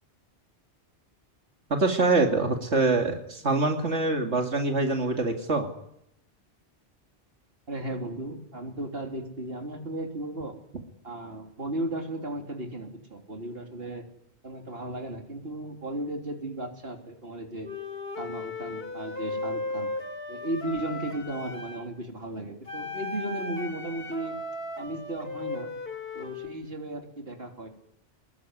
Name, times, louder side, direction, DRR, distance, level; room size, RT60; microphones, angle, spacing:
voice 1, 1.7-5.7, right 3 dB, 85° right, 3 dB, 2.7 m, -24 dB
voice 2, 7.7-10.5 11.0-14.0 14.4-17.7 18.2-19.9 20.3-24.4 24.8-25.7 26.1-27.7, right 1 dB, 60° right, 4 dB, 3.6 m, -35 dB
Wind instrument woodwind instrument, 17.6-21.9 22.7-26.6, left 2 dB, 60° left, 3.2 m, -36 dB
25.5 x 21.0 x 9.9 m, 0.77 s
omnidirectional pair, 1.1 m